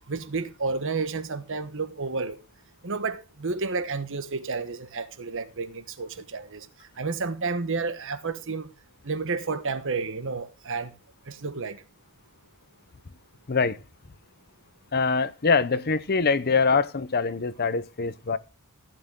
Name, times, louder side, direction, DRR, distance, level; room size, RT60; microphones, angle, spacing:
voice 1, 0.1-2.4 2.8-6.7 7.0-8.7 9.0-10.9 11.3-11.8, right 4 dB, 60° right, 1.2 m, -31 dB
voice 2, 13.5-13.8 14.9-18.4, left 4 dB, 45° left, 0.7 m, -24 dB
15.0 x 8.9 x 3.7 m
head